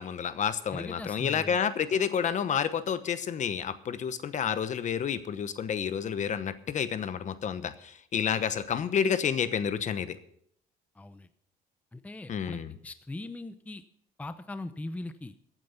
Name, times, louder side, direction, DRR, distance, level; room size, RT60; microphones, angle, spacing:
voice 1, 0.0-10.2 12.3-12.7, left 7 dB, 45° left, 13 dB, 1.0 m, -30 dB
voice 2, 0.7-1.6 11.0-11.3 11.9-13.8 14.2-15.3, left 2 dB, 10° left, 11 dB, 0.6 m, -40 dB
14.5 x 9.0 x 5.8 m, 0.68 s
cardioid pair, 110°, 17 cm